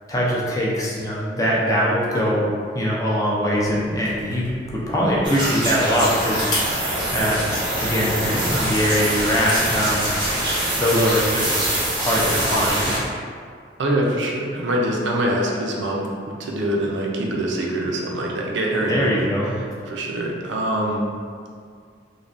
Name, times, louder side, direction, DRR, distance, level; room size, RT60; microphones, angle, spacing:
voice 1, 0.1-2.5 2.7-6.5 7.1-7.5 7.8-10.1 10.8-13.0 18.8-19.6, equal, 20° left, -5 dB, 0.4 m, -22 dB
sound 1, 3.6-12.9, left 1 dB, 70° left, 1.0 m, -36 dB
sound 2, 5.2-13.0, right 1 dB, 25° right, 0.6 m, -24 dB
voice 2, 13.8-16.1 16.4-19.2 19.9-21.0, right 1 dB, 80° right, -1 dB, 0.5 m, -24 dB
3.2 x 2.2 x 2.5 m, 2.1 s
head